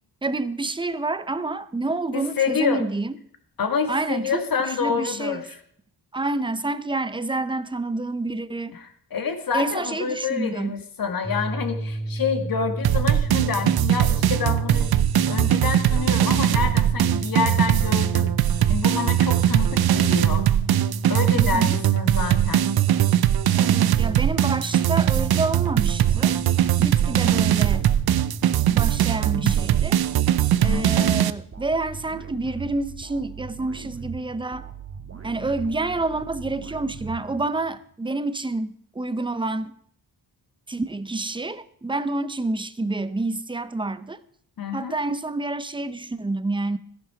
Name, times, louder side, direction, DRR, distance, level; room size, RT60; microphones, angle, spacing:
voice 1, 0.2-3.2 3.9-5.4 6.1-8.8 9.5-10.8 21.3-21.8 23.5-26.4 26.8-27.9 28.7-30.0 30.6-34.7 35.2-39.7 40.7-44.2 44.7-46.8, right 2 dB, 10° right, 0.7 m, -28 dB
voice 2, 2.1-2.8 3.6-5.5 8.7-20.5 21.1-22.7 30.6-31.1 44.6-45.0, left 6 dB, 60° left, 2.0 m, -28 dB
sound 1, 11.2-28.6, right 1 dB, 10° left, 1.5 m, -32 dB
sound 2, 12.8-31.3, right 12 dB, 65° right, 0.6 m, -21 dB
sound 3, 25.5-37.8, right 7 dB, 40° right, 1.7 m, -39 dB
14.0 x 11.0 x 4.9 m
wide cardioid pair, 120°, 40 cm